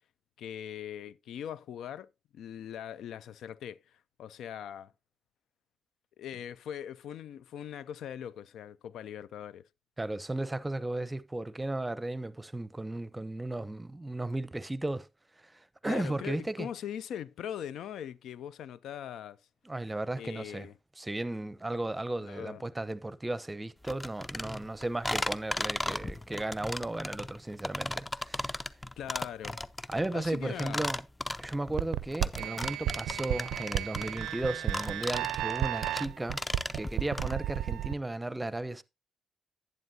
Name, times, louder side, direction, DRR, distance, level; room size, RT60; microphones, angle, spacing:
voice 1, 0.4-4.9 6.2-9.7 15.9-19.4 20.2-20.7 22.2-22.6 29.0-29.6 30.1-30.9, left 9 dB, 75° left, 0.4 m, -41 dB
voice 2, 10.0-15.1 15.4-16.7 19.6-20.7 21.0-28.6 29.9-31.0 31.4-36.4 36.7-38.8, right 2 dB, 15° right, 0.7 m, -35 dB
sound 1, 23.9-37.3, left 1 dB, 20° left, 0.7 m, -36 dB
sound 2, 31.8-37.9, right 13 dB, 80° right, 0.4 m, -33 dB
10.5 x 9.3 x 2.7 m
supercardioid pair, 50°, 0 cm